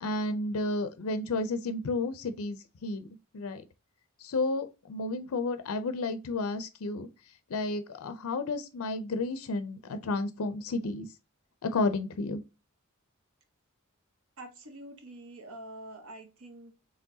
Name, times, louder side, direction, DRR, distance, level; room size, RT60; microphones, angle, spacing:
voice 1, 0.0-3.1 3.3-3.6 4.2-7.1 7.5-11.1 11.6-12.4, left 2 dB, 70° left, 0.5 m, -32 dB
voice 2, 14.4-16.8, right 1 dB, 70° right, 1.1 m, -46 dB
4.5 x 3.3 x 2.7 m
head